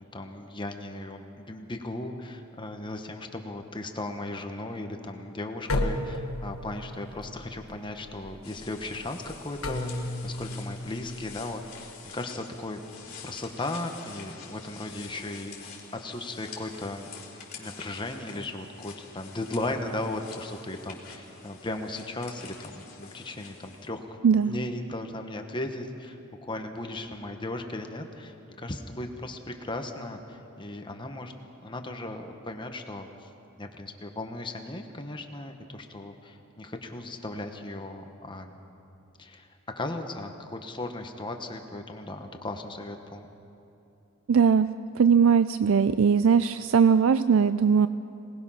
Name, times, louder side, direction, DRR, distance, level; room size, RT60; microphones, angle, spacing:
voice 1, 0.1-12.8 13.2-17.1 17.5-24.2 24.5-31.3 31.6-33.3 33.6-38.8 39.2-39.5 39.8-43.3, left 2 dB, 20° left, 5 dB, 1.2 m, -37 dB
sound 1, 5.7-12.0, left 1 dB, 70° left, 1.5 m, -34 dB
sound 2, 8.4-23.9, left 5 dB, 40° left, 3.8 m, -47 dB
voice 2, 44.3-44.7 45.0-47.9, right 6 dB, 65° right, 13 dB, 0.4 m, -20 dB
26.0 x 19.0 x 5.8 m, 2.8 s
head